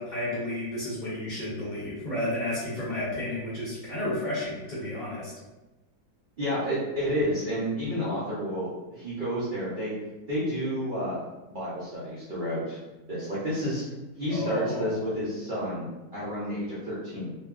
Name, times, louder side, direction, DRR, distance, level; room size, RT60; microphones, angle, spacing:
voice 1, 0.0-5.3 14.3-15.0, left 1 dB, 45° left, -9 dB, 0.6 m, -32 dB
voice 2, 6.4-9.9 10.3-11.2 11.5-12.8 13.1-13.8 14.2-17.3, equal, 90° right, -10 dB, 0.4 m, -30 dB
2.6 x 2.3 x 2.3 m, 1.1 s
omnidirectional pair, 1.7 m